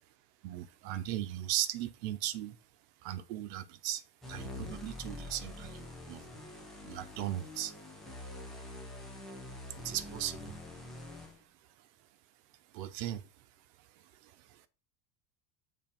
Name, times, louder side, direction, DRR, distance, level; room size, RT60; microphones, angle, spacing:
voice 1, 0.4-2.6 3.0-6.3 6.8-7.7 9.8-10.6 12.7-13.2 14.2-14.6, right 13 dB, 90° right, 0.9 m, -37 dB
sound 1, 4.2-11.4, left 2 dB, ahead, 0.8 m, -45 dB
7.3 x 3.0 x 4.3 m
cardioid pair, 165°, 48 cm